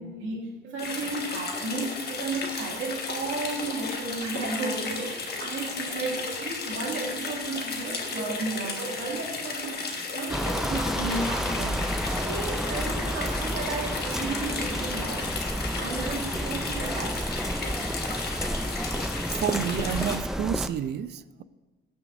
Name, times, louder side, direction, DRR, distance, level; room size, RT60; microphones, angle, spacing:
voice 1, 0.0-9.8 10.1-11.8 12.1-15.4 15.8-17.6, right 3 dB, 75° right, -1 dB, 2.2 m, -33 dB
sound 1, 0.8-20.2, left 4 dB, 55° left, 1.4 m, -34 dB
sound 2, 10.3-20.7, equal, ahead, 0.4 m, -31 dB
voice 2, 19.4-21.4, right 9 dB, 60° right, 15 dB, 0.4 m, -30 dB
15.5 x 6.1 x 2.6 m, 1.2 s
cardioid pair, 90°, 20 cm